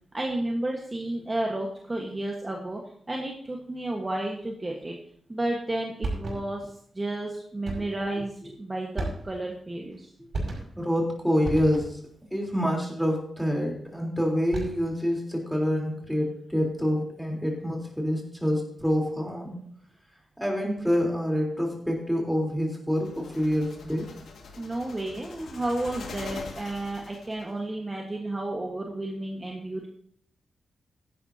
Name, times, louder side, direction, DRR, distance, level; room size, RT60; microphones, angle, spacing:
voice 1, 0.1-2.8 3.1-5.0 5.3-10.1 24.6-29.9, right 1 dB, 20° right, 0 dB, 1.4 m, -32 dB
sound 1, 6.0-6.7 7.6-8.1 8.9-9.6 10.3-10.9 11.4-12.1 14.3-15.0, right 2 dB, 55° right, 5.5 m, -34 dB
voice 2, 10.8-12.0 12.3-19.6 20.4-24.0, equal, ahead, -1 dB, 3.7 m, -27 dB
sound 2, 23.0-27.5, left 4 dB, 90° left, 2.0 m, -44 dB
16.0 x 11.5 x 2.8 m, 0.63 s
wide cardioid pair, 115°, 0 cm